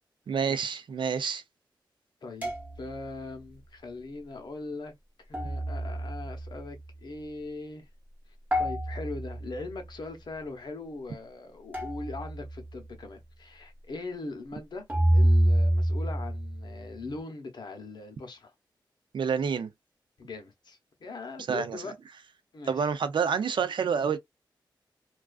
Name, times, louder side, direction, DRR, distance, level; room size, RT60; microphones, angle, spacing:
voice 1, 0.3-1.4 19.1-19.7 21.5-21.8 22.7-24.2, right 6 dB, 75° right, 0.4 m, -28 dB
voice 2, 2.2-2.5 2.8-4.9 5.3-7.9 8.6-14.9 15.1-18.5 20.2-21.9 22.5-22.9, left 3 dB, 65° left, 0.8 m, -40 dB
sound 1, 2.4-3.3 5.3-6.9 8.5-9.8 11.7-12.8 14.9-17.0, right 1 dB, 20° right, 0.9 m, -27 dB
2.3 x 2.3 x 2.3 m
wide cardioid pair, 120°, 8 cm